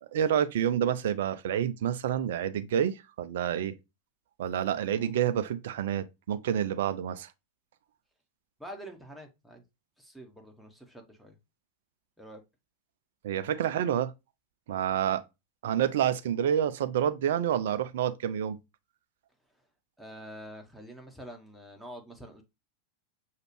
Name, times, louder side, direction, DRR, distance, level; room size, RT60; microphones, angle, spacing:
voice 1, 0.0-3.8 4.4-7.3 13.2-14.1 14.7-15.2 15.6-18.6, right 9 dB, 55° right, 0.5 m, -28 dB
voice 2, 8.6-9.6 10.0-11.4 12.2-12.4 20.0-22.4, equal, ahead, 1.0 m, -46 dB
6.3 x 2.4 x 3.1 m
figure-of-eight pair, 90°, 0 cm